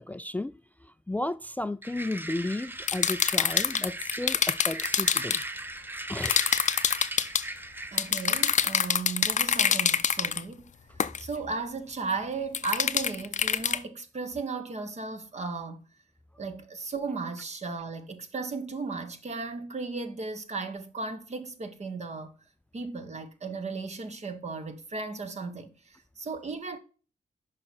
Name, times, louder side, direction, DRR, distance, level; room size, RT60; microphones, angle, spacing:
voice 1, 0.0-5.4 6.1-6.4, left 2 dB, 10° left, 0.3 m, -34 dB
sound 1, 1.8-9.0, right 2 dB, 15° right, 0.7 m, -38 dB
sound 2, 2.9-5.4 6.2-7.4 8.0-10.4 11.0-11.2 12.5-13.8, left 7 dB, 55° left, 0.6 m, -25 dB
voice 2, 7.9-10.6 11.2-15.8 16.4-22.3 22.7-26.8, right 4 dB, 50° right, 1.3 m, -35 dB
6.3 x 4.9 x 4.3 m
cardioid pair, 50°, 15 cm